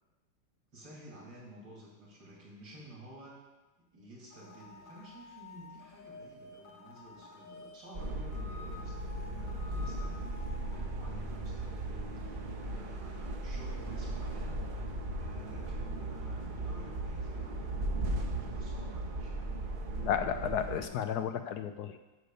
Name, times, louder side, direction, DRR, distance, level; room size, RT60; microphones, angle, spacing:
voice 1, 0.7-3.4 3.9-19.4, right 1 dB, 75° right, -4 dB, 3.4 m, -52 dB
sound 1, 4.3-10.8, left 3 dB, 85° left, 2.2 m, -51 dB
sound 2, 7.9-20.9, right 2 dB, 35° right, 1.0 m, -37 dB
voice 2, 19.9-22.1, left 8 dB, 70° left, 8 dB, 1.0 m, -33 dB
9.5 x 6.5 x 6.7 m, 1.1 s
omnidirectional pair, 2.0 m